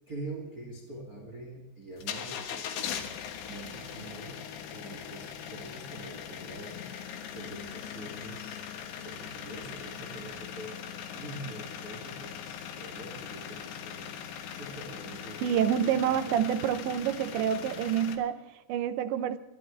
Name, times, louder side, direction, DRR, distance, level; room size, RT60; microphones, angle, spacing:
voice 1, 0.1-3.0 3.5-6.9 7.3-8.6 9.0-10.8 11.1-14.1 14.5-15.6 15.8-16.4, right 2 dB, 25° right, 2.1 m, -44 dB
sound 1, 2.0-18.2, left 8 dB, 85° left, 3.7 m, -40 dB
voice 2, 15.4-19.4, right 9 dB, 90° right, 3.2 m, -28 dB
26.0 x 12.5 x 3.4 m
omnidirectional pair, 5.0 m